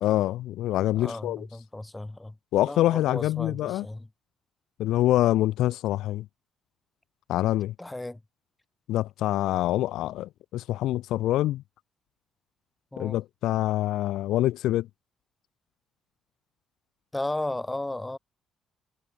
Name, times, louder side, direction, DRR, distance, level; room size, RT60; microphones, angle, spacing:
voice 1, 0.0-1.5 2.5-3.8 4.8-6.2 7.3-7.7 8.9-11.6 13.0-14.9, left 14 dB, 85° left, 1.5 m, -25 dB
voice 2, 0.9-4.1 7.8-8.2 12.9-13.2 17.1-18.2, left 2 dB, 10° left, 7.9 m, -35 dB
cardioid pair, 90°, 0 cm